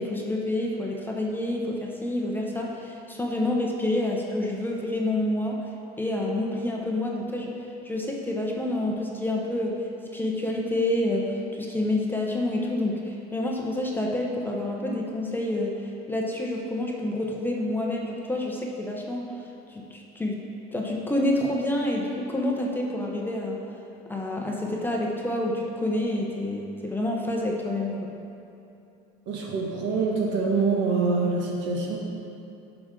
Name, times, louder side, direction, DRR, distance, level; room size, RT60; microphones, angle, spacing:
voice 1, 0.0-5.6 6.0-7.5 7.8-19.3 19.7-20.4 20.7-23.6 24.1-28.1, left 1 dB, 10° left, -1 dB, 0.9 m, -28 dB
voice 2, 29.3-32.0, right 4 dB, 60° right, -2 dB, 1.7 m, -25 dB
11.0 x 6.2 x 3.8 m, 2.8 s
cardioid pair, 125°, 21 cm